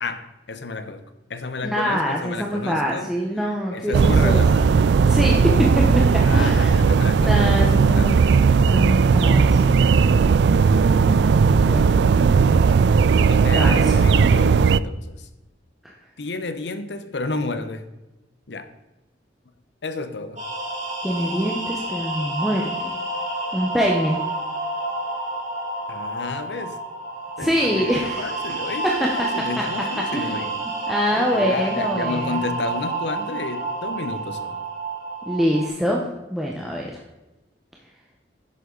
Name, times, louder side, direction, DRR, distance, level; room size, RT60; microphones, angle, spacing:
voice 1, 0.0-1.0 1.3-3.1 3.4-4.8 6.2-8.4 13.1-15.3 16.2-17.9 18.5-18.7 19.8-20.5 25.9-26.8 27.4-30.6 31.1-34.6, left 3 dB, 80° left, 10 dB, 0.9 m, -31 dB
voice 2, 1.6-4.4 5.1-6.7 7.2-8.2 8.6-9.7 11.6-11.9 13.5-13.9 15.8-15.9 21.0-22.9 23.5-24.2 27.4-28.2 28.8-29.1 30.1-30.3 30.9-32.4 35.3-36.0 36.3-36.9, equal, ahead, -2 dB, 1.0 m, -24 dB
sound 1, 3.9-14.8, right 5 dB, 75° right, 0.3 m, -17 dB
sound 2, 20.4-35.7, right 2 dB, 40° right, 2.8 m, -29 dB
10.5 x 7.9 x 3.9 m, 1.0 s
head